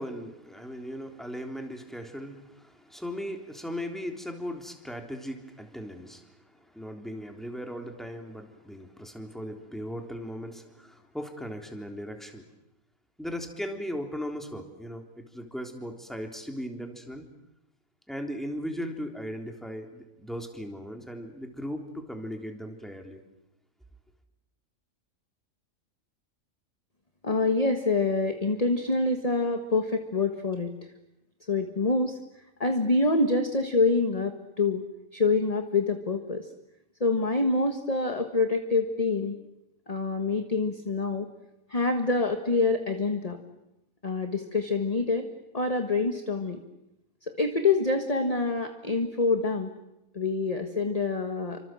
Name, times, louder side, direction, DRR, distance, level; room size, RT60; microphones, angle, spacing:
voice 1, 0.0-12.5 13.2-17.3 18.1-23.2, equal, ahead, 3 dB, 3.5 m, -38 dB
voice 2, 27.2-30.7 31.5-32.2 32.6-34.8 35.1-36.5 37.0-39.4 39.9-41.3 41.7-43.4 44.0-45.2 45.5-46.6 47.2-49.7 50.1-51.6, left 3 dB, 25° left, 5 dB, 1.7 m, -26 dB
29.5 x 25.5 x 7.7 m, 0.90 s
omnidirectional pair, 1.4 m